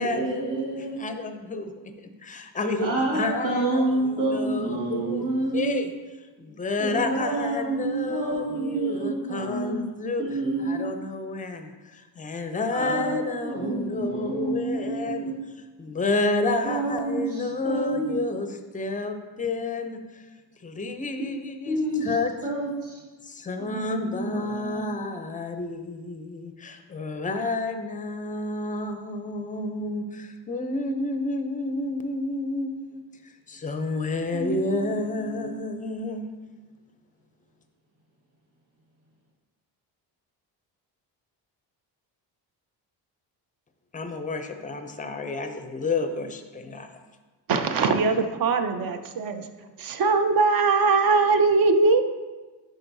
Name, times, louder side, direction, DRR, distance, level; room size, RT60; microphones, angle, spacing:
voice 1, 0.0-1.0 2.8-5.8 6.8-9.8 10.2-10.8 12.7-15.4 16.6-18.2 21.7-22.1 22.4-23.0 23.6-24.9 34.3-35.6, right 2 dB, 75° right, -3 dB, 1.7 m, -29 dB
voice 2, 1.0-1.7 2.0-5.3 5.5-5.9 6.4-10.2 10.6-15.3 15.8-20.2 20.6-21.8 22.0-22.3 23.2-33.0 33.5-36.2 43.9-46.9, left 3 dB, 20° left, 7 dB, 0.4 m, -30 dB
voice 3, 47.5-49.4 49.8-52.0, right 4 dB, 55° right, 8 dB, 0.6 m, -21 dB
10.5 x 3.9 x 2.6 m, 1.3 s
cardioid pair, 120°, 43 cm